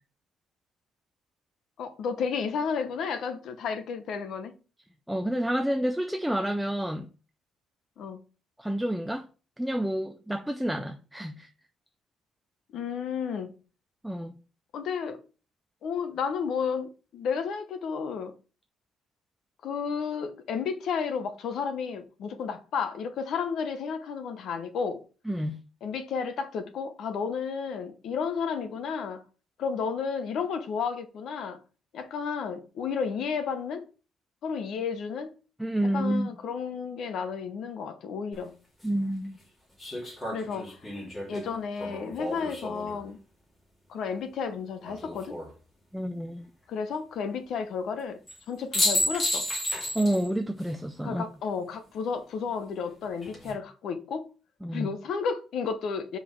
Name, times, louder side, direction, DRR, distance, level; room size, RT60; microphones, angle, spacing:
voice 1, 1.8-4.5 8.0-8.2 12.7-13.5 14.7-15.2 15.8-18.3 19.6-25.0 25.8-29.2 29.6-31.6 31.9-33.9 34.4-35.4 35.9-38.6 40.3-40.8 41.3-43.2 43.9-45.4 46.7-48.2 48.5-49.5 51.0-54.3 54.7-56.2, left 6 dB, 55° left, 0.8 m, -32 dB
voice 2, 5.1-7.1 8.6-9.2 9.6-11.5 14.0-14.3 25.3-25.6 35.6-36.3 38.8-39.4 45.9-46.5 49.9-51.2 54.6-54.9, right 1 dB, ahead, 0.4 m, -29 dB
sound 1, 38.3-38.4 39.8-43.0 44.8-45.5 48.3-48.4 48.7-50.3 50.6-50.7 53.0-53.5, left 1 dB, 15° left, 2.2 m, -31 dB
4.9 x 3.9 x 5.7 m
cardioid pair, 170°, 0 cm